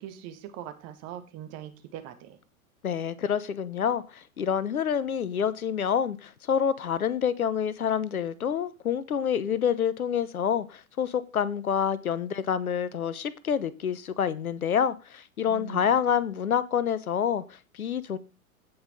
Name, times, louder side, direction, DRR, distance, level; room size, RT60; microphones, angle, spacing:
voice 1, 0.0-2.4 15.5-16.2, right 11 dB, 35° right, 1.9 m, -42 dB
voice 2, 2.8-18.2, left 8 dB, 75° left, 1.0 m, -27 dB
17.0 x 5.7 x 3.7 m
figure-of-eight pair, 100°, 43 cm